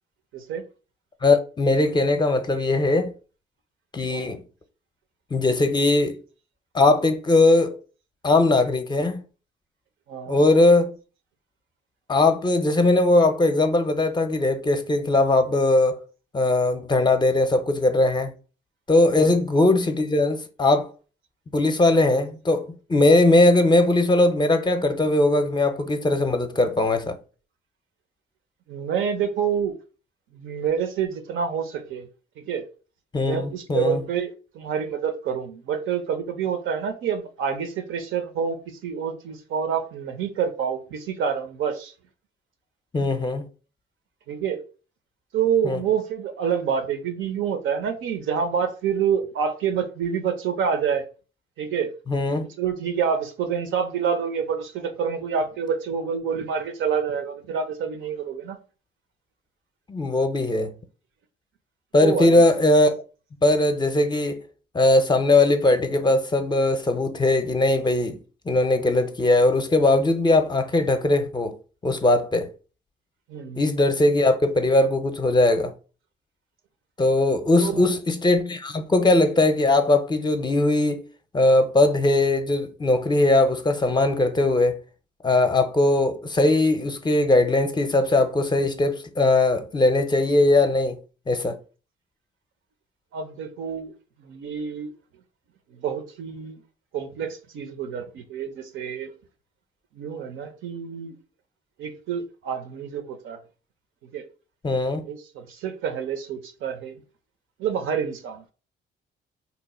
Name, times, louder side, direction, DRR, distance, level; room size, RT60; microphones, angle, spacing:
voice 1, 0.3-0.6 4.1-4.4 10.1-10.4 19.2-19.4 28.7-29.7 30.3-32.1 32.4-32.7 33.2-41.9 44.3-44.6 45.3-51.0 51.6-51.9 52.6-58.6 62.0-62.4 73.3-73.6 77.6-78.0 93.1-93.9 94.2-94.9 95.7-96.6 96.9-99.1 99.9-101.2 101.8-103.4 104.1-104.2 105.1-107.0 107.6-108.4, right 7 dB, 80° right, 0.6 m, -27 dB
voice 2, 1.2-3.1 3.9-4.4 5.3-6.2 6.7-7.7 8.2-9.2 10.3-11.0 12.1-16.0 16.3-18.3 18.9-20.9 21.5-27.2 33.1-34.0 42.9-43.4 45.6-45.8 52.1-52.5 59.9-60.7 61.9-63.0 63.4-64.4 64.7-68.2 68.5-71.5 71.8-72.5 73.6-75.7 77.0-81.0 81.3-84.7 85.2-91.0 91.3-91.6 104.6-105.0, left 2 dB, 20° left, 0.5 m, -20 dB
2.8 x 2.1 x 4.1 m
cardioid pair, 90°, 20 cm